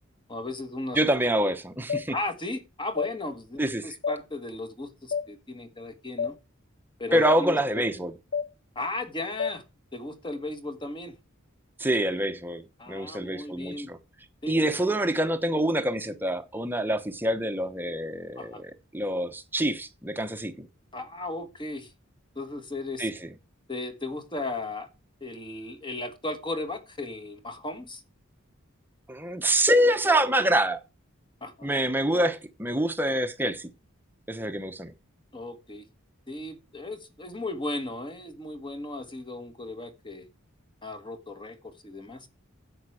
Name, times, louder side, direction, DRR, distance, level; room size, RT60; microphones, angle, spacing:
voice 1, 0.3-1.0 2.1-6.4 7.0-7.8 8.8-9.6 9.9-11.2 12.8-13.9 14.4-14.5 18.4-18.6 20.9-21.9 22.4-23.1 23.7-24.9 25.2-28.0 31.4-31.7 35.3-35.9 36.3-40.3 40.8-42.3, left 2 dB, 25° left, 1.6 m, -36 dB
voice 2, 0.9-2.1 3.6-3.9 7.1-8.1 11.8-14.0 14.5-20.7 23.0-23.3 29.1-30.8 31.6-33.7 34.3-34.9, right 1 dB, 10° right, 1.0 m, -26 dB
sound 1, 1.9-2.1 3.0-3.1 4.0-4.2 5.1-5.3 6.2-6.3 7.3-7.4 8.3-8.5 9.4-9.6, left 6 dB, 60° left, 1.1 m, -28 dB
10.5 x 7.9 x 4.9 m
head